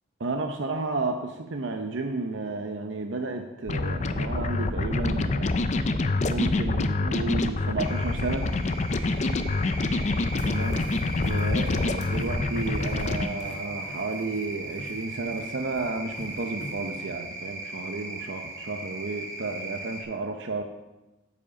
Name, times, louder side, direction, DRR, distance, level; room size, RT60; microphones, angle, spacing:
voice 1, 0.2-5.5 6.3-8.5 10.4-10.8 11.2-20.6, right 3 dB, 75° right, 4 dB, 0.7 m, -32 dB
sound 1, 3.7-13.3, left 2 dB, 35° left, 0.4 m, -26 dB
sound 2, 7.8-20.0, right 2 dB, 15° right, 1.4 m, -38 dB
sound 3, 10.4-17.1, left 1 dB, 70° left, 1.7 m, -44 dB
9.6 x 5.0 x 7.0 m, 1.0 s
head